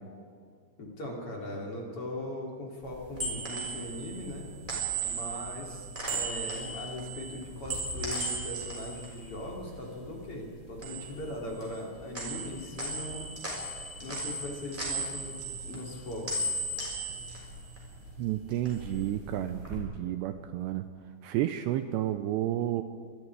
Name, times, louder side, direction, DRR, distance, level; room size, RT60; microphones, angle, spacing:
voice 1, 0.8-4.5 5.0-13.2 13.7-15.4 15.6-16.5, left 1 dB, 35° left, -1 dB, 3.2 m, -40 dB
sound 1, 2.9-10.2 10.5-11.9 12.1-18.1 18.5-19.8, right 2 dB, 10° right, 5.7 m, -36 dB
voice 2, 18.2-20.8 21.2-22.8, right 13 dB, 80° right, 9 dB, 2.6 m, -31 dB
25.5 x 21.5 x 4.8 m, 2.1 s
omnidirectional pair, 5.4 m